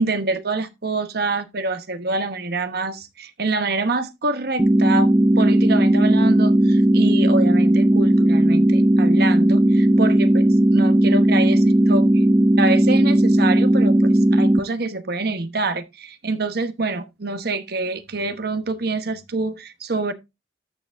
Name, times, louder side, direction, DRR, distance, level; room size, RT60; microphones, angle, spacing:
voice 1, 0.0-10.5 10.7-12.3 12.6-20.1, right 3 dB, 60° right, 1.1 m, -26 dB
sound 1, 4.6-14.6, right 1 dB, 15° right, 0.4 m, -16 dB
13.5 x 6.7 x 2.6 m
head